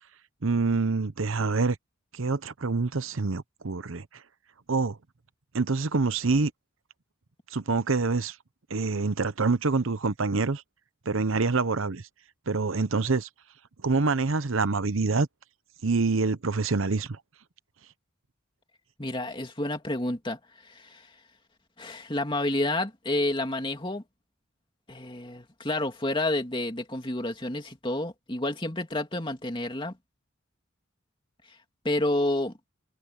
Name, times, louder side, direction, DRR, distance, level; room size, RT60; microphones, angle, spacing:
voice 1, 0.4-1.8 2.1-4.1 4.7-5.0 5.5-6.5 7.5-8.4 8.7-10.6 11.1-12.0 12.5-13.3 13.8-15.3 15.8-17.2, right 3 dB, 75° right, 0.9 m, -26 dB
voice 2, 19.0-20.4 20.6-21.1 21.8-24.0 24.9-29.9 31.8-32.5, left 1 dB, 25° left, 2.8 m, -29 dB
head